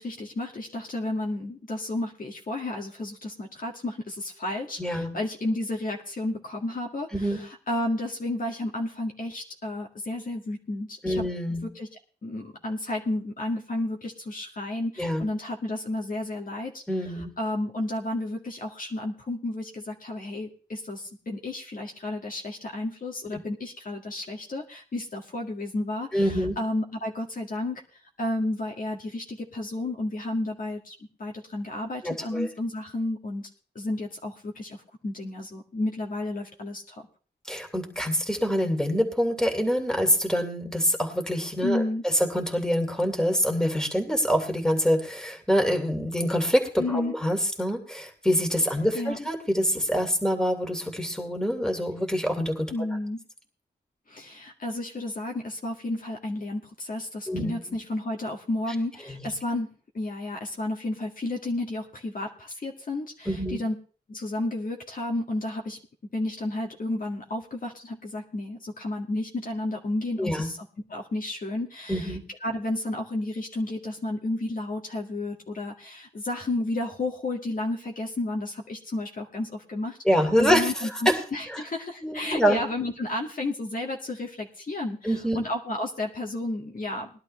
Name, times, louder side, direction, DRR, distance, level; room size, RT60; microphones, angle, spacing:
voice 1, 0.0-11.2 11.8-11.9 12.2-16.8 17.4-33.5 33.8-34.8 35.0-37.1 41.6-42.0 46.8-47.1 48.9-49.2 52.7-53.2 54.1-63.7 64.1-65.8 66.1-70.6 70.9-80.0 80.4-87.1, left 2 dB, 55° left, 0 dB, 2.0 m, -32 dB
voice 2, 4.8-5.1 7.1-7.4 11.0-11.7 15.0-15.2 16.9-17.3 26.1-26.6 32.0-32.5 37.5-41.8 42.3-52.7 57.3-57.6 59.1-59.3 63.3-63.6 70.2-70.5 71.9-72.2 80.0-80.7 81.1-81.2 81.5-81.6 82.0-82.6 85.0-85.4, equal, 5° left, 3 dB, 2.8 m, -25 dB
19.5 x 11.5 x 3.3 m, 0.39 s
cardioid pair, 70°, 17 cm